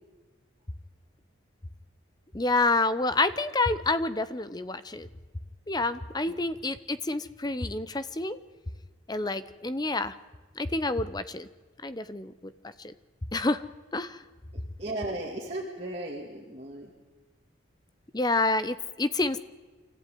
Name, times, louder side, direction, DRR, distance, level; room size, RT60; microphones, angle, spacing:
voice 1, 2.3-5.1 5.7-8.4 9.1-10.1 10.6-11.5 11.8-12.5 12.8-12.9 13.3-13.6 13.9-14.2 18.1-19.4, left 2 dB, 20° left, 14 dB, 0.7 m, -28 dB
voice 2, 14.8-16.9, right 1 dB, 30° right, -3 dB, 2.6 m, -36 dB
25.0 x 15.0 x 9.4 m, 1.3 s
head